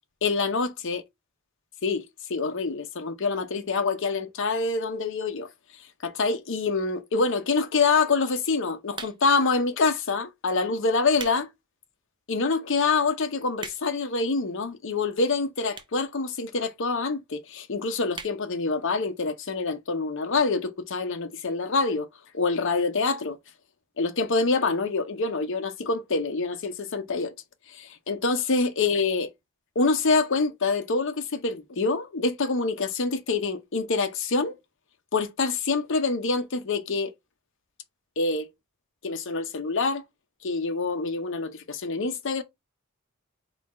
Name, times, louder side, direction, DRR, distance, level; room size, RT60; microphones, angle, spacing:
voice 1, 0.2-1.0 1.8-2.0 2.3-5.5 6.0-11.5 12.3-22.1 22.3-23.4 24.0-27.3 27.7-29.3 29.8-34.6 35.1-37.1 38.2-38.5 39.0-40.0 40.4-42.4, left 4 dB, 60° left, 0.7 m, -26 dB
sound 1, 8.9-9.5 10.2-10.4 10.9-11.4 11.9-12.0 12.6-12.7 12.9-13.0 13.2-14.1 14.9-15.0 15.7-16.1 16.4-16.5 16.6-16.7 17.0-17.1 17.4-17.6 18.1-18.4 18.8-18.9 19.1-19.2, right 4 dB, 20° right, 0.5 m, -40 dB
4.1 x 2.4 x 4.1 m
head